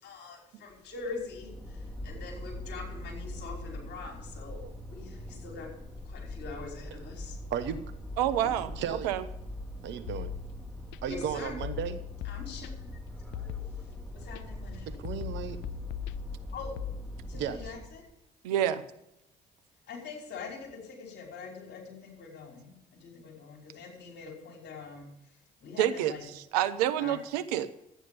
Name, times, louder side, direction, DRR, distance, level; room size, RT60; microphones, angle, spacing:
voice 1, 0.0-5.7 6.0-7.4 11.1-11.5 12.2-12.7 14.1-14.9 16.5-16.7 17.3-18.0 19.9-22.7 23.0-25.1 25.6-26.2 27.0-27.2, left 4 dB, 60° left, 1 dB, 5.3 m, -43 dB
sound 1, 0.7-18.0, left 1 dB, 5° left, 4.3 m, -42 dB
voice 2, 7.5-7.8 8.8-9.1 9.8-10.3 11.0-12.0 14.9-15.6 17.4-17.6, right 8 dB, 65° right, 11 dB, 1.2 m, -35 dB
voice 3, 8.2-8.8 9.0-9.2 18.4-18.8 25.8-27.7, right 11 dB, 85° right, 11 dB, 0.8 m, -28 dB
sound 2, 10.1-11.0 11.6-13.0 13.3-14.4 15.0-16.9, left 16 dB, 75° left, 0.4 m, -40 dB
12.5 x 9.3 x 7.0 m, 0.83 s
hypercardioid pair, 50°, 20 cm